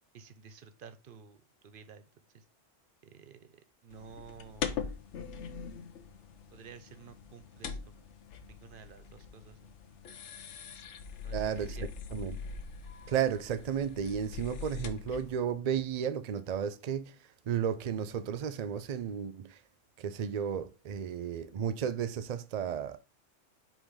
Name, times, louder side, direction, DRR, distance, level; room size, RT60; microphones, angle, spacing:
voice 1, 0.1-2.1 2.3-2.4 3.0-4.9 6.5-8.1 8.5-9.7 11.2-11.9, right 5 dB, 55° right, 0.7 m, -52 dB
sound 1, 3.9-15.3, left 6 dB, 70° left, 1.0 m, -42 dB
voice 2, 11.3-12.4 13.1-19.6 20.0-23.0, right 8 dB, 75° right, 0.3 m, -33 dB
5.0 x 3.8 x 4.9 m
omnidirectional pair, 1.3 m